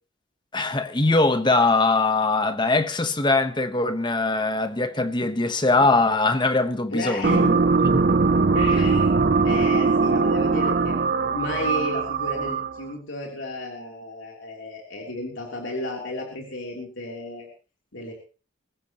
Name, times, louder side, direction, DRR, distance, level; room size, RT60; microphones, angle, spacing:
voice 1, 0.5-7.6 7.8-8.0, left 3 dB, 25° left, 1.2 m, -22 dB
voice 2, 6.9-7.5 8.5-9.1 9.4-17.5 17.9-18.1, left 1 dB, 70° left, 3.4 m, -33 dB
sound 1, 7.2-12.9, right 4 dB, 50° right, 0.6 m, -21 dB
23.5 x 14.5 x 3.1 m
head